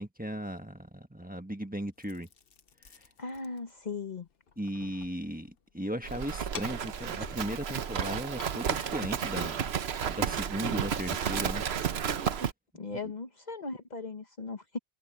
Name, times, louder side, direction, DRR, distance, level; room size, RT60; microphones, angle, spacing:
voice 1, 0.0-2.3 4.6-9.7 10.0-11.6, equal, 10° right, 1.3 m, -36 dB
sound 1, 1.9-11.3, left 6 dB, 65° left, 1.2 m, -52 dB
voice 2, 3.2-4.3 12.7-14.8, left 4 dB, 45° left, 1.1 m, -38 dB
Livestock farm animals working animals, 6.0-12.5, right 8 dB, 85° right, 1.1 m, -32 dB
omnidirectional pair, 1.0 m